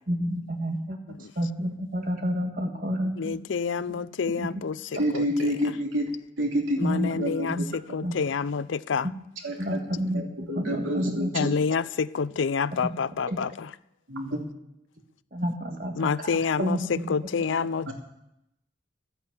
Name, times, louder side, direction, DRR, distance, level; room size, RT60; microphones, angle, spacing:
voice 1, 0.1-1.0 1.3-3.4 6.8-7.2 7.5-7.6 8.0-8.1 9.6-11.5 15.3-16.3 16.6-17.1, equal, 45° right, 1.8 m, -29 dB
voice 2, 3.2-5.8 6.8-9.1 11.3-13.7 16.0-17.9, left 5 dB, 75° left, 0.4 m, -28 dB
voice 3, 5.0-6.1 6.4-6.8 7.2-7.6 9.4-9.8 10.5-11.5 14.1-14.4 17.9-18.0, equal, 90° right, 2.7 m, -28 dB
12.5 x 10.0 x 8.3 m
head